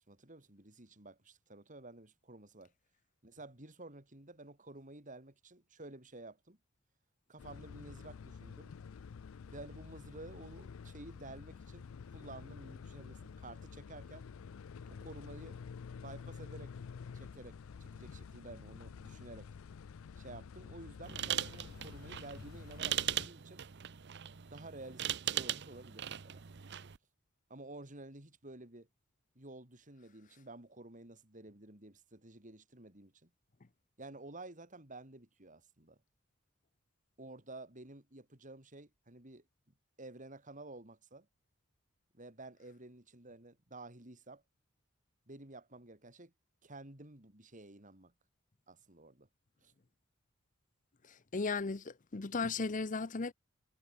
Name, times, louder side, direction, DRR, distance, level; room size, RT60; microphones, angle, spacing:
voice 1, 0.0-2.7 3.2-6.6 7.3-8.7 9.5-14.3 14.9-15.6 16.0-16.7 17.1-19.5 20.2-23.6 24.4-26.4 27.5-28.9 29.4-33.3 34.0-36.0 37.2-39.5 40.0-41.3 42.1-44.4 45.3-46.3 46.6-48.1 48.7-49.3 49.6-49.7, right 2 dB, 40° right, 3.8 m, -52 dB
sound 1, 7.4-23.3, left 6 dB, 80° left, 0.4 m, -49 dB
sound 2, 21.0-27.0, right 11 dB, 55° right, 0.7 m, -39 dB
voice 2, 51.1-53.3, left 4 dB, 40° left, 0.7 m, -36 dB
head